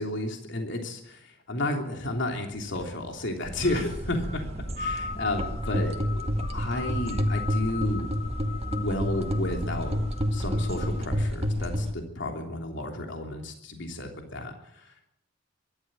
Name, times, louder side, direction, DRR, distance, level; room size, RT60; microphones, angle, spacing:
voice 1, 0.0-4.4 4.8-5.9 6.5-8.1 8.7-9.9 10.3-15.1, left 1 dB, 65° left, 3 dB, 3.3 m, -32 dB
sound 1, 2.5-11.0, left 5 dB, 35° left, 6.5 m, -40 dB
sound 2, 3.4-11.9, equal, 30° right, 1.8 m, -30 dB
23.0 x 13.0 x 9.1 m, 0.75 s
head